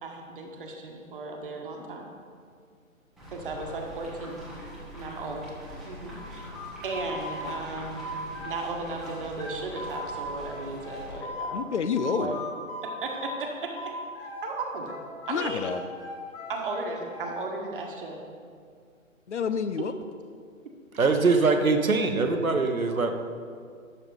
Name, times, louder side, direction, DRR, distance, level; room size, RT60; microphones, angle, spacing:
voice 1, 0.0-2.1 3.3-4.4 4.9-5.5 5.9-6.4 6.8-8.1 8.4-11.7 12.1-12.3 12.8-13.7 14.4-14.9 15.3-15.7 16.5-18.2 21.0-21.1, right 3 dB, 40° right, 1 dB, 1.3 m, -35 dB
sound 1, 3.2-11.2, equal, ahead, 0.9 m, -43 dB
sound 2, 6.2-8.7 9.0-11.6 12.0-14.5 14.9-17.5, left 1 dB, 25° left, 1.5 m, -39 dB
voice 2, 11.5-12.4 15.3-15.8 19.3-19.9, left 6 dB, 60° left, 11 dB, 0.7 m, -28 dB
voice 3, 20.9-23.1, right 3 dB, 85° right, 6 dB, 1.1 m, -23 dB
12.0 x 6.9 x 3.9 m, 2.1 s
figure-of-eight pair, 140°, 41 cm